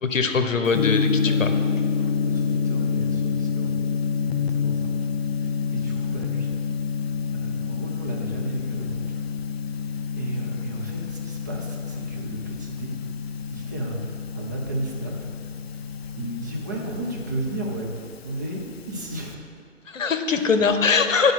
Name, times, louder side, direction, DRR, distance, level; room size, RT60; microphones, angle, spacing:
voice 1, 0.0-1.5 19.9-21.3, left 5 dB, 75° left, 8 dB, 0.9 m, -22 dB
Gong, 0.7-19.3, left 6 dB, 50° left, 0.5 m, -28 dB
voice 2, 2.2-3.8 4.3-4.9 5.4-6.5 7.3-9.0 9.7-12.9 13.5-14.0 14.3-15.3 16.2-17.9 18.2-19.4 20.3-20.8, right 2 dB, 15° right, -3 dB, 0.5 m, -34 dB
9.7 x 5.1 x 6.0 m, 2.3 s
figure-of-eight pair, 145°, 39 cm